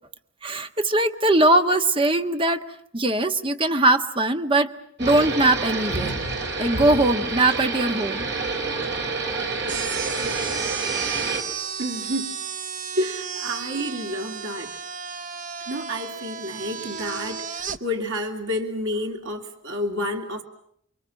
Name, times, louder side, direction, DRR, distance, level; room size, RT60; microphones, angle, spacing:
voice 1, 0.4-2.7 2.9-4.7 5.0-6.1 6.6-8.2, right 2 dB, 25° right, 7 dB, 1.4 m, -21 dB
sound 1, 5.0-11.4, right 3 dB, 60° right, 4.4 m, -28 dB
sound 2, 9.7-17.8, right 6 dB, 40° right, 1.0 m, -33 dB
voice 2, 11.8-12.4 12.9-14.7 15.7-20.4, equal, 80° right, 2 dB, 2.7 m, -29 dB
29.5 x 23.5 x 7.4 m, 0.70 s
head